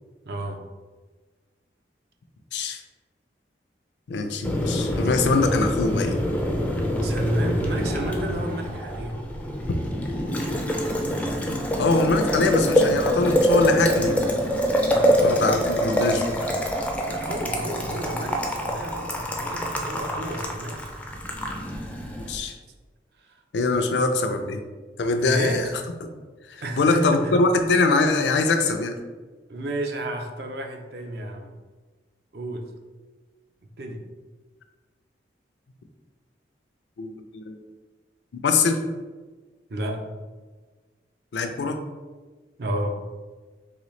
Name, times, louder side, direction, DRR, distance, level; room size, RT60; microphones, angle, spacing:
voice 1, 0.3-0.6 7.0-9.2 14.9-15.8 17.0-20.9 23.2-23.4 23.8-24.0 25.2-25.7 26.6-27.4 29.5-31.5 32.3-32.7 33.6-34.0 39.7-40.1 42.6-43.0, right 1 dB, 65° right, 4 dB, 0.5 m, -31 dB
voice 2, 2.5-2.8 4.1-6.2 11.7-14.3 15.2-16.5 22.3-22.6 23.5-24.6 25.0-25.7 26.0-26.1 26.5-29.0 37.0-37.6 38.4-38.8 41.3-41.8, left 3 dB, 75° left, 6 dB, 0.4 m, -23 dB
Boiling, 4.4-22.4, equal, 10° left, 0.3 m, -25 dB
3.9 x 3.2 x 3.1 m, 1.3 s
head